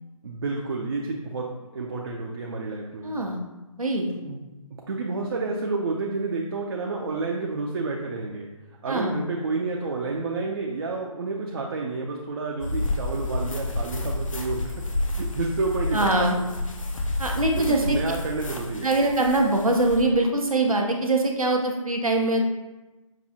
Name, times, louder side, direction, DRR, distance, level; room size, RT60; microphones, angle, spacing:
voice 1, 0.2-1.5 1.7-3.1 4.2-4.4 4.9-8.5 8.8-14.8 15.1-16.5 17.6-18.9, right 3 dB, 45° right, -1 dB, 0.5 m, -30 dB
voice 2, 3.0-3.4 3.8-4.1 8.9-9.2 15.9-16.4 17.2-18.0 18.8-22.4, right 2 dB, 90° right, 1 dB, 0.7 m, -23 dB
sound 1, 12.6-20.0, left 2 dB, 70° left, 0.7 m, -30 dB
5.9 x 2.3 x 2.7 m, 1.1 s
figure-of-eight pair, 140°, 18 cm